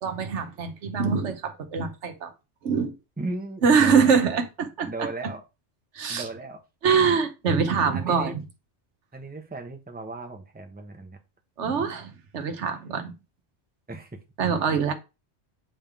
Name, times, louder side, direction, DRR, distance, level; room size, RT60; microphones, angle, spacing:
voice 1, 0.0-2.3 2.6-2.9 3.6-4.9 5.9-6.2 6.8-8.4 11.6-13.1 14.4-14.9, right 6 dB, 85° right, 1.3 m, -24 dB
voice 2, 3.2-4.2 4.8-5.4 6.1-6.6 7.9-8.4 9.1-11.2 13.9-14.2, right 2 dB, 10° right, 0.9 m, -36 dB
8.8 x 3.7 x 3.5 m
omnidirectional pair, 1.2 m